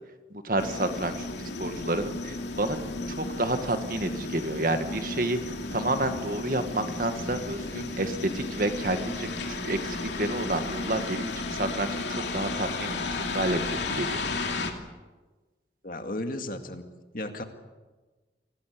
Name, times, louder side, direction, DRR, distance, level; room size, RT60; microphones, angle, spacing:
voice 1, 0.3-1.3 1.6-2.8 3.2-13.1 13.3-14.2, right 1 dB, 50° right, 8 dB, 1.8 m, -30 dB
sound 1, 0.6-14.7, left 3 dB, 85° left, 2.7 m, -33 dB
voice 2, 15.8-16.8 17.1-17.4, left 1 dB, 50° left, 6 dB, 2.1 m, -34 dB
24.5 x 17.5 x 8.5 m, 1.3 s
head